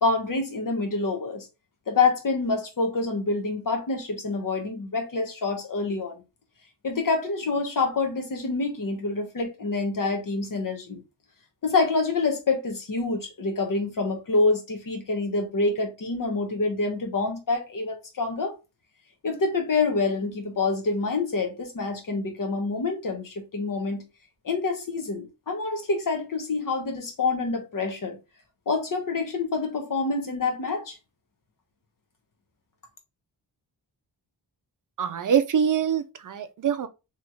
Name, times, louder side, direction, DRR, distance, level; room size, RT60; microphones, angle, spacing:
voice 1, 0.0-1.5 1.9-6.1 6.8-11.0 11.6-18.5 19.2-24.0 24.4-28.2 28.7-31.0, left 3 dB, 50° left, 1.0 m, -27 dB
voice 2, 35.0-36.9, right 8 dB, 50° right, 0.5 m, -24 dB
3.1 x 2.9 x 2.4 m
wide cardioid pair, 145°, 42 cm